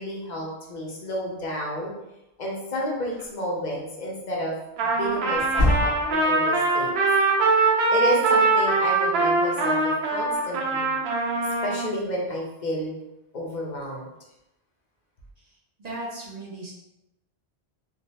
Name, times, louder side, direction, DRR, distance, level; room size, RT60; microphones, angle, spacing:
voice 1, 0.0-1.9 2.4-4.5 4.8-6.9 7.9-10.9 11.6-12.9 13.3-14.1, equal, 50° left, -2 dB, 0.6 m, -31 dB
sound 1, 3.1-3.3 5.3-6.3, left 1 dB, 65° right, 1.5 m, -25 dB
Trumpet, 4.8-11.9, right 3 dB, 80° right, 0.9 m, -22 dB
voice 2, 15.8-16.7, right 1 dB, 50° right, -4 dB, 0.6 m, -36 dB
3.1 x 2.2 x 2.7 m, 0.91 s
omnidirectional pair, 1.1 m